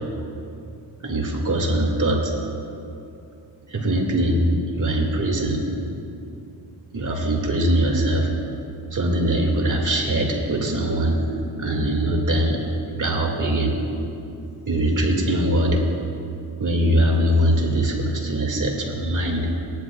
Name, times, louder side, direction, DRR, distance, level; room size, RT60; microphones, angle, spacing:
voice 1, 1.0-2.3 3.7-4.5 4.8-5.7 6.9-8.3 8.9-11.2 11.6-12.7 13.0-13.8 14.7-15.8 16.6-19.5, right 1 dB, 45° right, 0 dB, 2.2 m, -22 dB
18.5 x 11.5 x 2.4 m, 2.7 s
cardioid pair, 85°, 41 cm